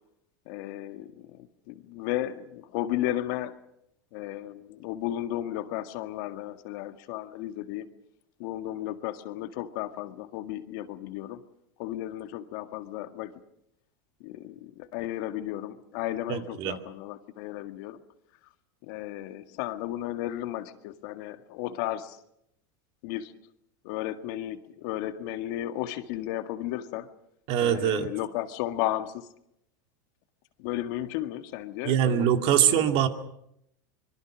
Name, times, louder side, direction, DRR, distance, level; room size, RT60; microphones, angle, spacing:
voice 1, 0.4-3.5 4.1-7.9 8.4-11.4 11.8-13.3 14.2-18.0 18.8-22.2 23.0-23.3 23.8-27.1 27.6-29.3 30.6-32.3 32.5-32.9, left 13 dB, 65° left, 8 dB, 1.8 m, -34 dB
voice 2, 16.3-16.8 27.5-28.1 31.9-33.1, right 10 dB, 55° right, 6 dB, 2.4 m, -23 dB
25.0 x 22.5 x 6.2 m, 0.77 s
supercardioid pair, 115°, 11 cm